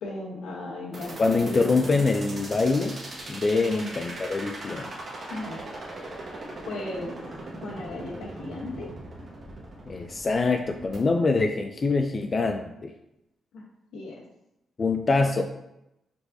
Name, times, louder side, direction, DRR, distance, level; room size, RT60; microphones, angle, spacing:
voice 1, 0.0-2.1 3.6-3.9 5.3-5.6 6.6-7.1 7.6-8.9 13.5-13.6 13.9-14.1, left 2 dB, 90° left, -2 dB, 1.0 m, -36 dB
sound 1, 0.9-11.0, right 2 dB, 50° right, 1.2 m, -39 dB
voice 2, 1.2-3.0 3.3-4.9 9.9-12.9 14.8-15.4, left 3 dB, 40° left, 5 dB, 0.3 m, -24 dB
4.6 x 3.9 x 2.7 m, 0.87 s
cardioid pair, 75°, 0 cm